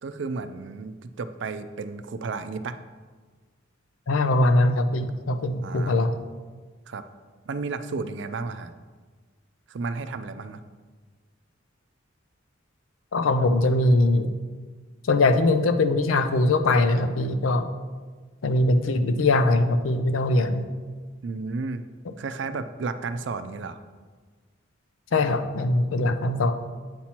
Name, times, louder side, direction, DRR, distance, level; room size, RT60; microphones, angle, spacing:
voice 1, 0.0-2.8 5.6-6.1 6.9-7.0 7.5-8.7 9.7-10.6 21.2-21.8 22.2-23.8, right 4 dB, 60° right, 10 dB, 0.4 m, -33 dB
voice 2, 4.1-6.1 13.1-14.3 15.1-17.6 18.4-20.7 25.1-26.5, left 2 dB, 90° left, 9 dB, 0.5 m, -21 dB
8.5 x 5.9 x 2.9 m, 1.4 s
head